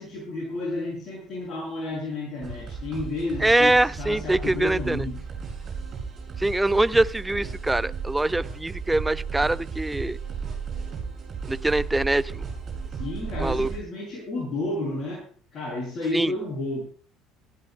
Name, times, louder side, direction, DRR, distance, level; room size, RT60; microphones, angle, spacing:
voice 1, 0.0-5.2 12.9-16.9, left 2 dB, 40° left, -6 dB, 7.5 m, -31 dB
sound 1, 2.4-13.8, right 5 dB, 40° right, 7.1 m, -34 dB
voice 2, 3.4-5.1 6.4-10.2 11.5-12.4 13.4-13.7 16.1-16.3, right 2 dB, 10° right, 16 dB, 0.6 m, -23 dB
26.0 x 15.0 x 2.3 m, 0.37 s
figure-of-eight pair, 60°, 0 cm